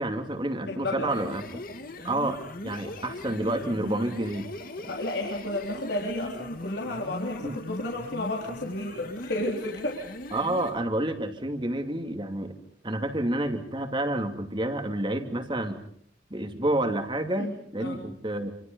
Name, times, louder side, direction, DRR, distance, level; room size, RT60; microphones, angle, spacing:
voice 1, 0.0-1.6 2.0-4.5 7.4-7.6 10.3-12.5 12.8-15.8 16.3-18.5, right 1 dB, 25° right, 6 dB, 2.7 m, -29 dB
voice 2, 0.7-1.1 4.9-10.0 17.4-17.5 17.8-18.0, left 1 dB, 70° left, -1 dB, 3.8 m, -32 dB
sound 1, 1.0-10.8, left 1 dB, 50° left, 2.3 m, -39 dB
28.5 x 26.5 x 5.4 m, 0.65 s
head